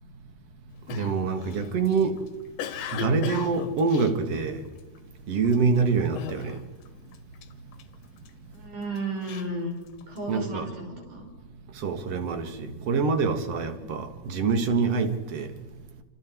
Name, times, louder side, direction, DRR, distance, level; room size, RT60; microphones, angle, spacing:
Cough, 0.9-5.0 5.5-5.8 6.2-6.9 7.1-8.3 8.8-10.3, left 8 dB, 75° left, 2.8 m, -38 dB
voice 1, 0.9-2.2 2.9-4.6 5.3-6.6 10.3-10.7 11.8-15.5, right 4 dB, 50° right, 2.7 m, -25 dB
voice 2, 8.5-9.8 10.0-11.3 13.8-13.9, right 2 dB, 70° right, 6.8 m, -34 dB
27.5 x 26.5 x 4.7 m
omnidirectional pair, 3.9 m